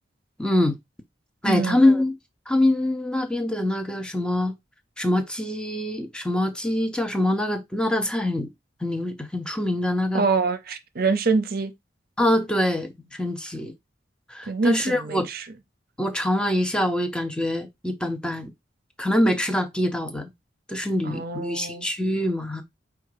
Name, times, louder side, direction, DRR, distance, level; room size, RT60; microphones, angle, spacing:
voice 1, 0.4-0.8 1.4-2.2 2.5-4.5 5.0-8.5 8.8-10.2 12.2-13.7 14.3-15.3 16.0-18.5 19.0-20.3 20.7-22.6, left 1 dB, 5° left, 0.6 m, -24 dB
voice 2, 1.5-1.8 10.1-11.7 14.5-15.5 21.0-21.9, right 4 dB, 55° right, 0.6 m, -25 dB
4.7 x 2.3 x 4.8 m
head